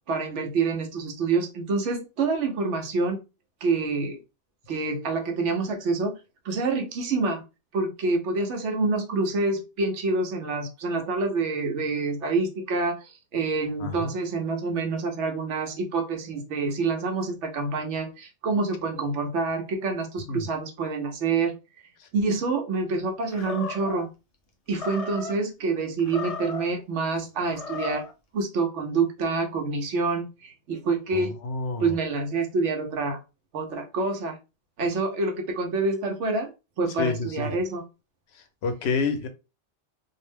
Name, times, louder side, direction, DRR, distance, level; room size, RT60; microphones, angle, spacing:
voice 1, 0.1-3.2 3.6-4.2 4.7-6.2 6.4-7.4 7.7-21.6 22.1-24.1 24.7-28.1 28.3-31.3 31.8-33.2 33.5-34.4 34.8-36.5 36.8-37.8, right 3 dB, 85° right, 1.0 m, -27 dB
voice 2, 13.8-14.1 20.3-20.5 22.0-22.1 31.1-31.9 37.0-37.5 38.6-39.3, left 4 dB, 70° left, 0.8 m, -28 dB
Animal, 23.3-24.0 24.7-25.4 26.0-26.7 27.4-28.1, left 3 dB, 45° left, 0.5 m, -35 dB
2.5 x 2.1 x 3.2 m
omnidirectional pair, 1.2 m